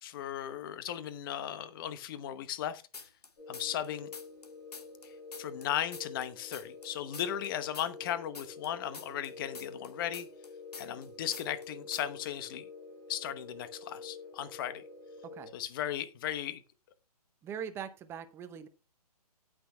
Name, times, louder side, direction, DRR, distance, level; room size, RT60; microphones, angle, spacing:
voice 1, 0.0-3.1 3.5-4.1 5.0-10.3 10.8-12.7 13.1-14.8 15.5-16.6, left 10 dB, 35° left, 13 dB, 1.0 m, -36 dB
sound 1, 2.9-3.9 4.1-6.9 7.1-11.1 11.3-11.7 11.9-12.3, left 4 dB, 75° left, 1.9 m, -47 dB
sound 2, 3.4-15.5, left 4 dB, 50° left, 5.5 m, -48 dB
voice 2, 17.4-18.7, right 8 dB, 10° right, 9 dB, 0.8 m, -41 dB
17.5 x 6.1 x 2.2 m, 0.32 s
figure-of-eight pair, 140°, 20 cm